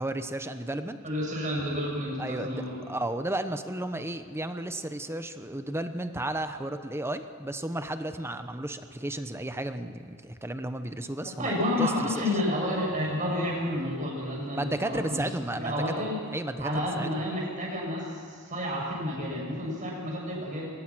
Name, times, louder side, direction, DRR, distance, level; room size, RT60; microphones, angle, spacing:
voice 1, 0.0-1.0 2.2-12.2 14.4-15.9 16.3-17.1, right 1 dB, 10° right, 9 dB, 0.9 m, -33 dB
voice 2, 1.0-2.8 11.2-15.2 15.5-16.2 16.6-20.7, left 1 dB, 40° right, -2 dB, 7.5 m, -30 dB
23.5 x 20.0 x 6.2 m, 2.3 s
head